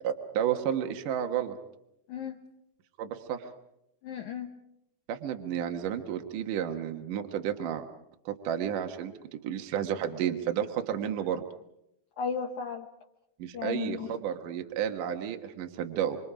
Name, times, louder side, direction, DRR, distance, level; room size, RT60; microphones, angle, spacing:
voice 1, 0.0-1.6 3.0-3.5 5.1-7.9 8.3-11.4 13.4-16.2, right 9 dB, 65° right, 5 dB, 2.7 m, -31 dB
voice 2, 2.1-2.4 4.0-4.5 12.2-12.9 13.5-14.2, left 7 dB, 65° left, 2 dB, 2.2 m, -35 dB
27.5 x 25.5 x 5.0 m, 0.81 s
omnidirectional pair, 4.3 m